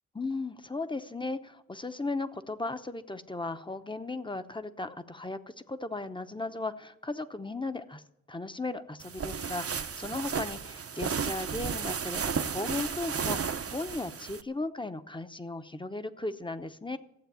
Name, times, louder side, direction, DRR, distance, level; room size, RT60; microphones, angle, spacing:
voice 1, 0.1-17.0, left 2 dB, 15° left, 10 dB, 0.8 m, -36 dB
sound 1, 9.0-14.4, right 6 dB, 50° right, 0.7 m, -33 dB
14.5 x 8.0 x 9.3 m, 0.82 s
wide cardioid pair, 80°, 30 cm